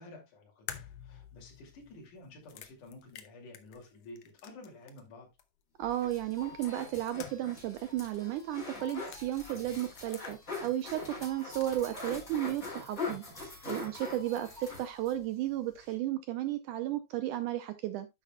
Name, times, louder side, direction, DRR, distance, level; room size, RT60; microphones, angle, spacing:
voice 1, 0.0-5.3, left 2 dB, 60° left, 3.9 m, -51 dB
sound 1, 0.7-5.1 5.4-5.5 6.6-7.6 7.9-8.0 8.7-9.2 9.7-10.8 11.1-12.0, left 10 dB, 80° left, 1.4 m, -49 dB
sound 2, 5.8-15.2 15.5-15.6 15.8-15.9, left 3 dB, 20° left, 4.8 m, -43 dB
voice 2, 5.8-18.1, right 13 dB, 80° right, 1.9 m, -34 dB
sound 3, 6.1-15.1, left 2 dB, ahead, 3.4 m, -55 dB
10.0 x 7.6 x 2.3 m
omnidirectional pair, 4.2 m